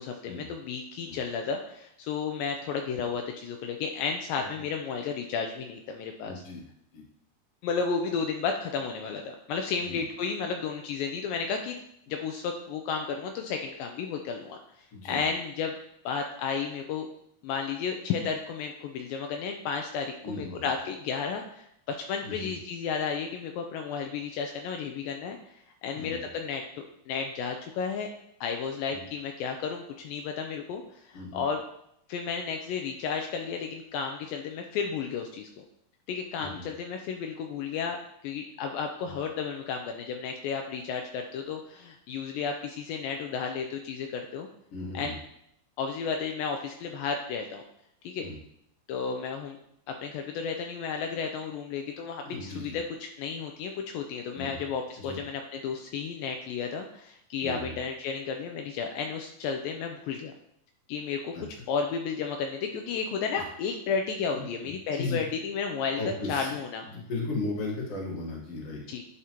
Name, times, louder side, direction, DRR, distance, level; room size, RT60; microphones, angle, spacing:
voice 1, 0.0-6.3 7.6-11.8 12.1-14.6 15.1-15.8 16.1-17.1 17.4-25.4 25.8-26.6 27.1-28.1 28.4-31.6 32.1-35.6 36.1-44.5 44.9-45.1 45.8-47.6 48.0-48.3 48.9-49.6 49.9-52.8 53.2-60.3 60.9-61.3 61.7-66.0 66.3-66.8 68.9-69.0, left 5 dB, 80° left, 4 dB, 2.2 m, -33 dB
voice 2, 6.3-6.6 6.9-7.0 9.8-10.0 14.9-15.2 20.2-20.7 22.2-22.5 25.9-26.2 28.9-29.0 31.1-31.4 36.4-36.7 39.0-39.2 44.7-45.2 48.2-48.4 52.2-52.8 54.3-54.6 55.0-55.2 57.4-57.7 61.3-61.5 64.3-64.5 64.9-65.2 66.0-66.5 66.9-68.8, left 3 dB, 50° left, -2 dB, 2.1 m, -36 dB
10.5 x 4.8 x 2.9 m, 0.74 s
omnidirectional pair, 4.1 m